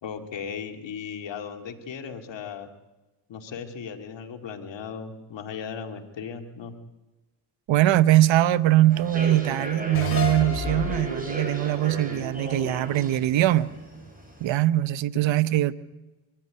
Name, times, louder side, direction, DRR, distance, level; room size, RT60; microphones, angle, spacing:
voice 1, 0.0-2.7 3.3-6.7, left 6 dB, 70° left, 2.6 m, -37 dB
voice 2, 7.7-13.7 14.4-15.7, right 14 dB, 75° right, 0.9 m, -22 dB
Human voice / Subway metro underground, 8.9-14.4, right 2 dB, 20° right, 7.4 m, -36 dB
sound 1, 9.9-13.3, left 4 dB, 50° left, 5.8 m, -33 dB
24.0 x 14.5 x 9.7 m
cardioid pair, 65°, 45 cm